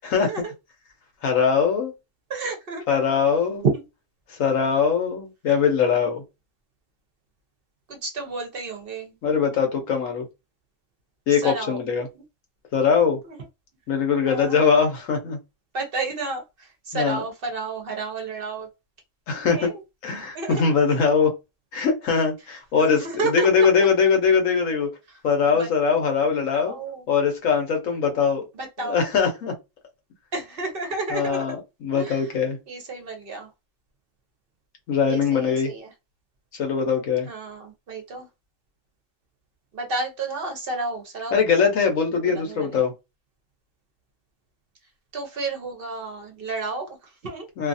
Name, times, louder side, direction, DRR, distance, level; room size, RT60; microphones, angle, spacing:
voice 1, 1.2-1.9 2.9-3.6 4.3-6.2 9.2-10.3 11.3-12.1 12.7-13.2 13.9-15.4 16.9-17.2 19.3-19.7 20.0-21.3 21.7-23.0 23.3-24.9 25.2-26.8 27.1-28.5 28.8-29.5 31.1-32.6 34.9-35.7 36.5-37.3 41.3-42.9 47.6-47.7, left 6 dB, 80° left, 1.2 m, -21 dB
voice 2, 2.3-2.8 3.6-3.9 7.9-9.2 11.3-11.8 12.1-12.2 13.2-13.4 14.3-14.6 15.7-18.7 19.3-19.8 20.3-20.7 22.8-23.9 25.1-25.2 25.5-25.7 26.5-27.0 28.5-29.1 30.3-31.5 31.9-32.3 32.7-33.5 35.1-35.9 37.2-38.3 39.7-41.4 42.2-42.8 45.1-47.5, right 3 dB, 50° right, 0.8 m, -31 dB
2.7 x 2.4 x 2.6 m
omnidirectional pair, 1.3 m